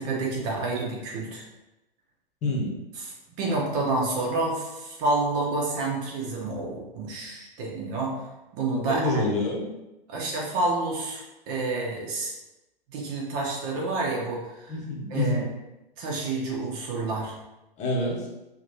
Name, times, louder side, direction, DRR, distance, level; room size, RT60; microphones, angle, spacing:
voice 1, 0.0-1.4 3.0-3.1 3.4-8.1 8.5-9.2 10.1-12.3 12.9-14.7 15.1-15.5 16.0-17.3, right 2 dB, 40° right, -2 dB, 1.4 m, -29 dB
voice 2, 8.9-9.7 14.7-15.5 17.8-18.3, left 1 dB, 25° left, -3 dB, 1.3 m, -27 dB
5.6 x 3.1 x 2.7 m, 0.99 s
figure-of-eight pair, 110°, 29 cm